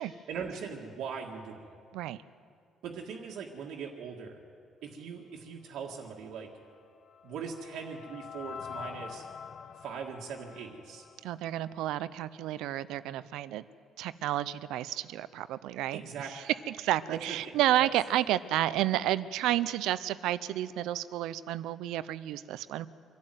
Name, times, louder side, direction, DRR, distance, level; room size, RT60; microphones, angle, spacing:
voice 1, 0.3-1.6 2.8-4.4 4.8-6.5 7.2-9.3 9.8-11.1 15.9-16.3 17.1-17.9, right 6 dB, 70° right, 0 dB, 1.8 m, -40 dB
sound 1, 6.7-11.8, left 7 dB, 40° left, 0.8 m, -46 dB
voice 2, 11.2-13.6 14.0-16.0 16.3-16.4 16.8-22.9, right 13 dB, 90° right, 16 dB, 0.6 m, -31 dB
24.5 x 12.0 x 9.3 m, 2.3 s
cardioid pair, 165°, 0 cm